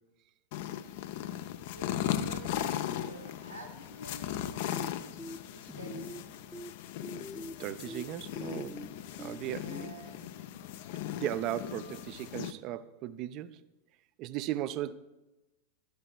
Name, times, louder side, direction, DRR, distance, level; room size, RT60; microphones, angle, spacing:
sound 1, 0.5-12.5, left 11 dB, 50° left, 0.4 m, -38 dB
voice 1, 1.7-5.0 5.5-6.5 9.5-10.4, right 1 dB, 85° right, 1.1 m, -49 dB
sound 2, 5.2-5.4 5.7-6.2 6.5-6.7 7.0-7.5 7.9-8.0 8.4-8.9 9.2-9.4 9.7-9.8, equal, 5° left, 0.6 m, -43 dB
voice 2, 7.6-8.8 9.2-9.9 11.2-13.6 14.2-14.9, right 13 dB, 40° right, 0.4 m, -36 dB
12.5 x 11.5 x 2.2 m
figure-of-eight pair, 90°, 0 cm